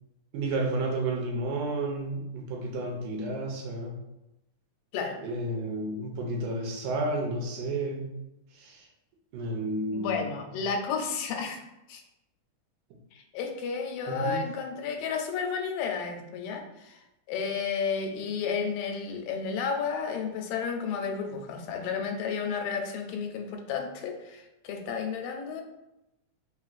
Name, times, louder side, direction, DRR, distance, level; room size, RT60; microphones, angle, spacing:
voice 1, 0.3-3.9 5.2-8.1 8.5-8.9 9.3-10.3 14.1-14.5, right 2 dB, 85° right, 0 dB, 2.2 m, -31 dB
voice 2, 9.9-11.6 11.9-12.0 13.1-25.6, left 6 dB, 85° left, 3 dB, 2.2 m, -32 dB
5.0 x 3.0 x 2.4 m, 0.92 s
omnidirectional pair, 3.7 m